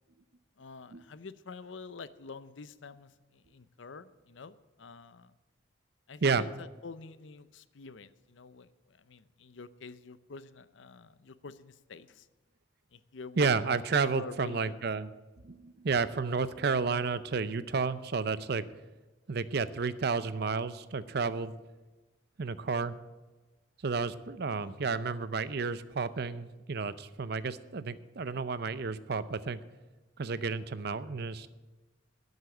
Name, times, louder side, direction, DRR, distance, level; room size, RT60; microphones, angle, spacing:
voice 1, 0.6-5.3 6.1-12.3 12.9-13.5 14.0-14.8 24.4-24.8, left 4 dB, 75° left, 14 dB, 0.6 m, -47 dB
voice 2, 13.4-15.1 15.4-18.7 19.3-21.5 22.4-23.0 23.8-29.6 30.2-31.5, right 4 dB, 55° right, 14 dB, 0.6 m, -31 dB
12.0 x 8.2 x 7.8 m, 1.2 s
head